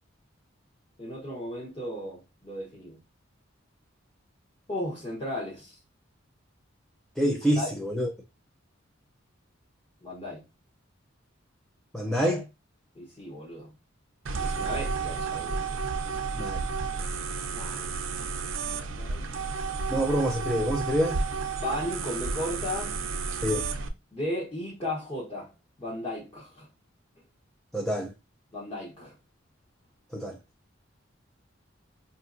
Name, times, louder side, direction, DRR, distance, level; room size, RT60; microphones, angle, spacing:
voice 1, 1.0-3.0 4.7-5.8 7.6-7.7 10.0-10.4 13.0-13.7 14.4-15.7 17.5-17.9 18.7-19.3 21.6-23.0 24.1-25.5 25.8-26.7 28.5-29.1, left 1 dB, 30° left, 1.0 m, -35 dB
voice 2, 7.2-8.1 11.9-12.4 16.4-16.6 19.9-21.2 23.4-23.7 27.7-28.1 30.1-30.4, equal, ahead, 0.4 m, -26 dB
sound 1, 14.3-23.9, right 4 dB, 75° right, 0.5 m, -31 dB
5.0 x 2.7 x 2.5 m
head